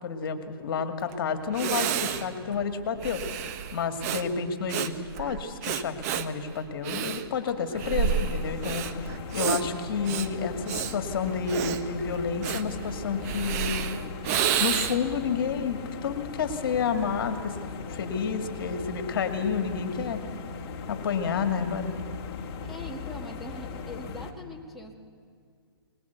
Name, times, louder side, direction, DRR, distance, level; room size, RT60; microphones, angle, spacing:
voice 1, 0.0-13.9 14.6-20.2 20.9-22.0, left 6 dB, 60° left, 8 dB, 2.0 m, -30 dB
Breathing, 1.1-1.2 1.5-15.2, right 8 dB, 40° right, 1.1 m, -31 dB
sound 1, 7.7-24.3, left 4 dB, 35° left, 2.2 m, -39 dB
voice 2, 22.6-24.9, left 1 dB, ahead, 0 dB, 1.8 m, -42 dB
22.0 x 20.0 x 8.1 m, 2.1 s
hypercardioid pair, 145°, 13 cm